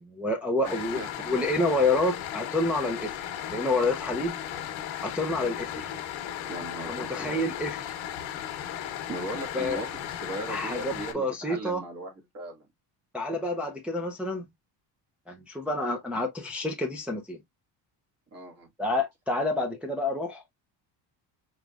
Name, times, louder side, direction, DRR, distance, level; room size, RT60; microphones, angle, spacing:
voice 1, 0.0-4.4 5.0-5.9 6.9-8.0 9.5-9.8 10.5-11.8 13.1-14.4 15.3-17.4 18.8-20.4, left 2 dB, 5° right, 0.5 m, -28 dB
sound 1, 0.6-11.1, left 10 dB, 85° left, 1.0 m, -36 dB
voice 2, 0.6-1.1 6.5-7.4 9.1-9.9 10.2-12.7 18.3-18.7, right 2 dB, 35° right, 1.7 m, -38 dB
4.9 x 3.1 x 2.3 m
cardioid pair, 155°, 46 cm